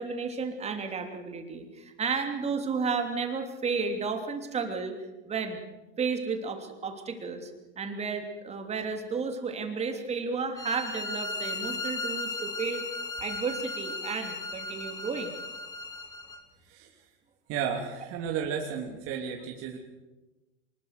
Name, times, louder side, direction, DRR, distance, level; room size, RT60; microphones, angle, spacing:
voice 1, 0.0-4.9 5.2-5.6 6.0-7.5 7.8-15.4, right 5 dB, 20° right, 5 dB, 3.0 m, -32 dB
sound 1, 10.6-16.4, left 3 dB, 10° left, 2.0 m, -36 dB
voice 2, 17.5-19.8, right 7 dB, 40° right, 0 dB, 3.0 m, -33 dB
25.0 x 21.0 x 6.7 m, 1.1 s
hypercardioid pair, 125°, 35 cm